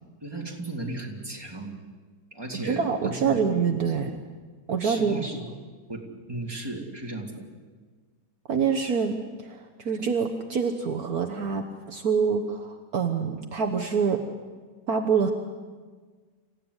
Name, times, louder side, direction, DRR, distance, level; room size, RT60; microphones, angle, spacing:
voice 1, 0.2-1.7 2.3-3.4 4.8-5.5 5.9-7.5, right 2 dB, 15° right, 0 dB, 3.1 m, -35 dB
voice 2, 2.5-4.1 4.7-5.2 8.5-14.2 14.9-15.3, right 6 dB, 60° right, 3 dB, 1.6 m, -26 dB
27.5 x 15.5 x 9.8 m, 1.5 s
omnidirectional pair, 1.8 m